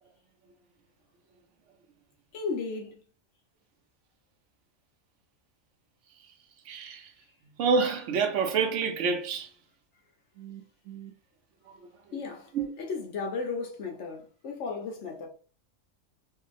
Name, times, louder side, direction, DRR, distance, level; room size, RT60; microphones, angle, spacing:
voice 1, 2.3-3.0 12.1-12.5 12.8-15.3, left 4 dB, 70° left, 1.0 m, -35 dB
voice 2, 6.7-7.1 7.6-9.5 10.4-10.6 10.9-11.1 12.5-12.7, right 5 dB, 75° right, 1.0 m, -28 dB
2.8 x 2.6 x 2.4 m
omnidirectional pair, 1.3 m